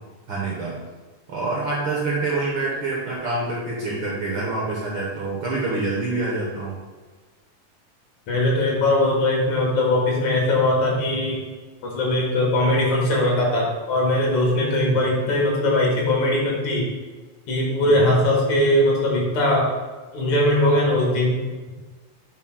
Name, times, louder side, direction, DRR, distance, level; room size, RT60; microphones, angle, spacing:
voice 1, 0.3-0.8 1.3-6.8 14.8-15.0 17.8-18.1, right 3 dB, 60° right, -5 dB, 1.5 m, -26 dB
voice 2, 8.3-11.4 11.8-16.9 17.5-19.7 20.1-21.4, left 1 dB, 75° left, -2 dB, 2.6 m, -20 dB
8.0 x 5.7 x 2.3 m, 1.3 s
omnidirectional pair, 3.3 m